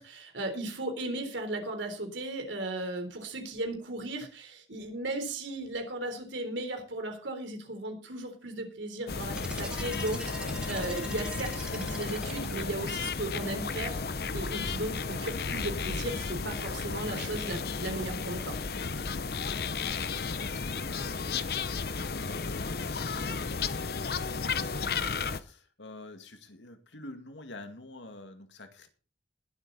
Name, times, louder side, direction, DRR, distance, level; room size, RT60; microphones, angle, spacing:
voice 1, 0.0-18.6, right 2 dB, 85° right, 5 dB, 3.7 m, -36 dB
sound 1, 9.1-25.4, left 4 dB, 55° left, 0.7 m, -33 dB
sound 2, 9.3-12.9, right 1 dB, 5° right, 1.6 m, -43 dB
voice 2, 19.3-24.0 24.2-28.9, left 2 dB, 85° left, 7 dB, 2.1 m, -48 dB
20.0 x 8.2 x 4.1 m, 0.36 s
head